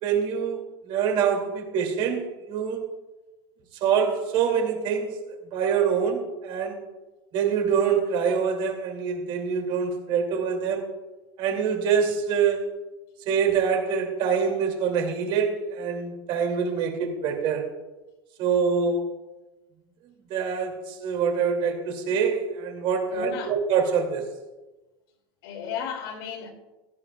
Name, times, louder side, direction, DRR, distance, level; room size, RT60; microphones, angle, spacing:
voice 1, 0.0-2.8 3.8-6.8 7.3-10.8 11.4-12.7 13.3-17.7 18.4-19.1 20.3-24.2, right 6 dB, 40° right, 2.6 m, -25 dB
voice 2, 23.1-23.5 25.4-26.5, left 7 dB, 75° left, 3.0 m, -34 dB
17.0 x 13.5 x 2.4 m
supercardioid pair, 160°, 13 cm